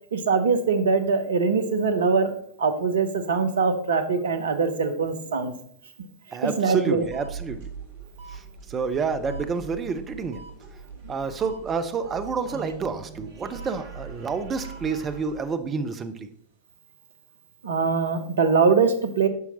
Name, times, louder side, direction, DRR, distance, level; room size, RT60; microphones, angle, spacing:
voice 1, 0.1-2.3 2.6-5.5 6.4-7.0 17.6-19.3, right 5 dB, 65° right, 9 dB, 0.8 m, -22 dB
voice 2, 6.3-7.7 8.3-10.4 11.1-16.3, right 5 dB, 25° right, 10 dB, 0.6 m, -29 dB
sound 1, 6.9-15.4, right 5 dB, 50° right, 1.2 m, -41 dB
9.4 x 5.7 x 3.0 m, 0.65 s
figure-of-eight pair, 90°, 0 cm